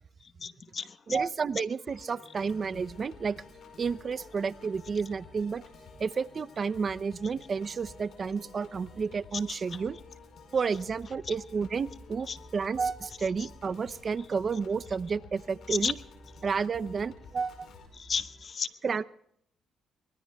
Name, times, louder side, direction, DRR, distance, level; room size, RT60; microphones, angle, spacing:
voice 1, 0.4-1.2 9.5-9.8 11.2-11.3 12.3-12.4 13.4-13.5 15.7-15.9 17.9-18.7, left 6 dB, 45° left, 12 dB, 1.0 m, -34 dB
voice 2, 1.1-3.4 3.8-5.6 6.0-10.0 10.5-12.3 12.5-16.0 16.4-17.7 18.8-19.0, right 5 dB, 40° right, 15 dB, 0.6 m, -31 dB
Piano / Organ, 1.9-17.9, left 5 dB, 70° left, 5.0 m, -53 dB
sound 1, 2.4-18.5, right 1 dB, 5° right, 5.9 m, -55 dB
24.0 x 21.5 x 2.3 m, 0.68 s
cardioid pair, 90°, 0 cm